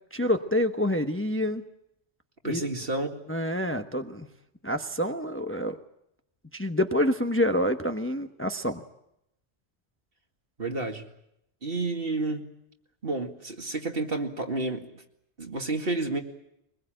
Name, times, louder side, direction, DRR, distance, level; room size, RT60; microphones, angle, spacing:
voice 1, 0.1-1.6 2.5-2.6 3.3-4.3 4.6-5.8 6.5-8.8, left 1 dB, 10° left, 7 dB, 1.0 m, -27 dB
voice 2, 2.4-3.1 10.6-11.1 11.6-12.4 13.0-14.9 15.4-16.2, right 2 dB, 55° right, 4 dB, 2.4 m, -30 dB
23.0 x 21.0 x 9.0 m, 0.80 s
omnidirectional pair, 1.1 m